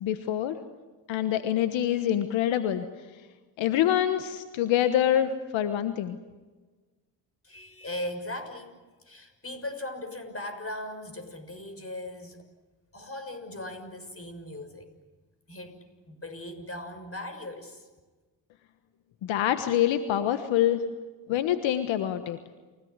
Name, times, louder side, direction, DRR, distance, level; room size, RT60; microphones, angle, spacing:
voice 1, 0.0-0.6 1.1-2.8 3.6-6.2 19.2-20.8 21.3-22.4, left 11 dB, 80° left, 9 dB, 1.3 m, -25 dB
voice 2, 7.4-8.8 9.1-12.5 12.9-14.9 15.5-15.8 16.1-17.8, left 1 dB, 30° left, 8 dB, 6.5 m, -38 dB
29.5 x 17.5 x 9.6 m, 1.3 s
supercardioid pair, 50°, 45 cm